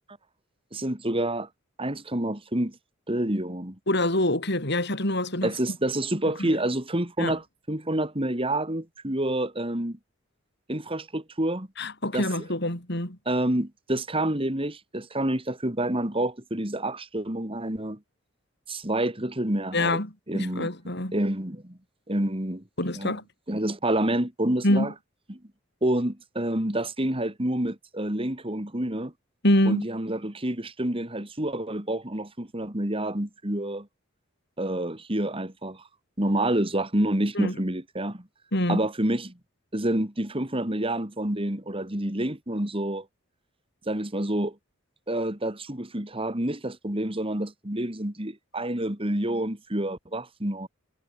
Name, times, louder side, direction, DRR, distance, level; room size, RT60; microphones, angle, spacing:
voice 1, 0.7-1.5 1.8-2.8 3.1-3.8 5.4-10.0 10.7-11.7 12.1-12.3 13.3-18.0 18.7-20.0 20.3-20.7 21.1-21.8 22.1-22.6 22.9-23.2 23.5-24.9 25.3-25.4 25.8-29.1 29.7-33.9 34.6-35.8 36.2-38.3 38.7-39.3 39.7-43.1 43.9-44.6 45.1-50.7, right 1 dB, 25° right, 2.9 m, -28 dB
voice 2, 3.9-5.5 6.4-6.5 7.2-7.4 11.8-13.2 19.7-21.1 22.8-23.2 24.6-24.9 29.4-29.8 37.3-37.5 38.5-38.8, left 1 dB, 55° left, 6.4 m, -25 dB
head